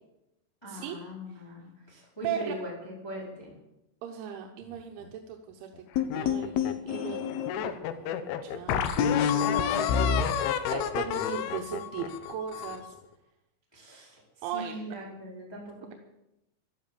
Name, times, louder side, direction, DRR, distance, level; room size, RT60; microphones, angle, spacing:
voice 1, 0.6-3.6 13.7-15.9, equal, 5° left, -4 dB, 3.8 m, -41 dB
voice 2, 2.2-2.6 4.0-10.4 10.7-13.0 14.4-14.8, right 8 dB, 85° right, 3 dB, 3.5 m, -38 dB
Laughter, 4.7-5.1 5.7-12.4 12.6-13.1, left 10 dB, 90° left, 3.4 m, -35 dB
sound 1, 6.0-7.5 8.1-8.2 8.7-12.9, left 8 dB, 75° left, 2.6 m, -28 dB
13.0 x 12.0 x 8.3 m, 0.90 s
omnidirectional pair, 5.3 m